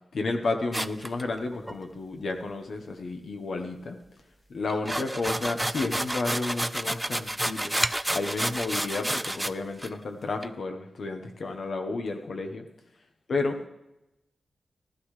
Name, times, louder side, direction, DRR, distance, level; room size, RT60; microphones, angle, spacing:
voice 1, 0.1-4.0 4.5-7.8 8.1-12.6 13.3-13.6, left 3 dB, 60° left, 5 dB, 1.1 m, -31 dB
sound 1, 0.7-1.8 4.7-9.5 9.8-9.9 10.4-10.5, right 1 dB, 5° right, 0.4 m, -30 dB
15.5 x 13.0 x 3.3 m, 0.91 s
wide cardioid pair, 175°, 0 cm